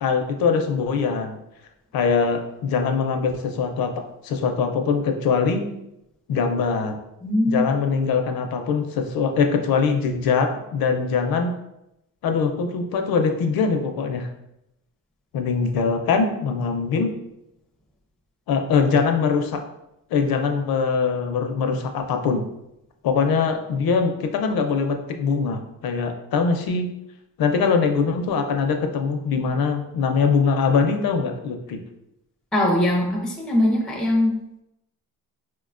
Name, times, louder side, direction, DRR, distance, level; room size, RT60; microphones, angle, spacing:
voice 1, 0.0-1.3 1.9-5.6 6.3-7.0 7.5-11.5 12.2-14.3 15.3-17.1 18.5-19.6 20.1-22.4 23.0-26.9 27.4-31.8, left 5 dB, 70° left, 5 dB, 0.5 m, -22 dB
voice 2, 7.2-7.7 32.5-34.4, left 1 dB, ahead, -2 dB, 0.4 m, -21 dB
4.5 x 2.2 x 2.4 m, 0.84 s
wide cardioid pair, 175°, 37 cm